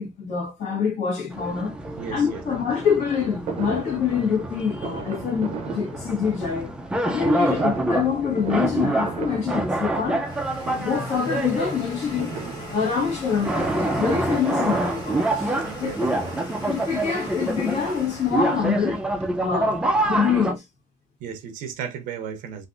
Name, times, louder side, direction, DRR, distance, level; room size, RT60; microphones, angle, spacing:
voice 1, 0.0-1.7 2.1-6.7 7.0-10.4 10.8-12.3 12.7-15.9 16.6-19.0 19.4-20.6, left 6 dB, 55° left, 1.5 m, -25 dB
sound 1, 1.3-20.5, right 2 dB, 5° right, 0.4 m, -27 dB
voice 2, 2.0-2.4 7.4-7.5 15.6-16.0 21.2-22.7, right 7 dB, 90° right, 0.7 m, -34 dB
Fireworks, 3.5-6.7 7.4-10.4 10.6-11.2 12.2-13.3 14.4-17.1 17.9-18.0 18.2-18.3 18.7-19.9 20.2-20.3 20.5-20.6, right 5 dB, 50° right, 0.6 m, -37 dB
Domestic sounds home sounds, 9.1-19.8, left 1 dB, 30° left, 1.4 m, -41 dB
3.3 x 2.5 x 2.5 m
cardioid pair, 155°, 14 cm